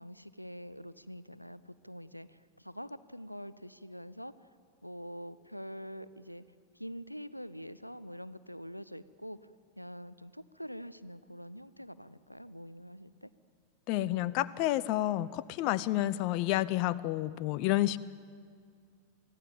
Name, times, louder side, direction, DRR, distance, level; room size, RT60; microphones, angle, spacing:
voice 1, 0.0-4.3 4.8-6.4 6.7-9.5 9.8-13.3, equal, 90° left, 16 dB, 0.6 m, -45 dB
voice 2, 13.9-18.0, left 15 dB, 45° left, 17 dB, 0.5 m, -30 dB
24.0 x 16.5 x 8.9 m, 2.1 s
figure-of-eight pair, 90°, 0 cm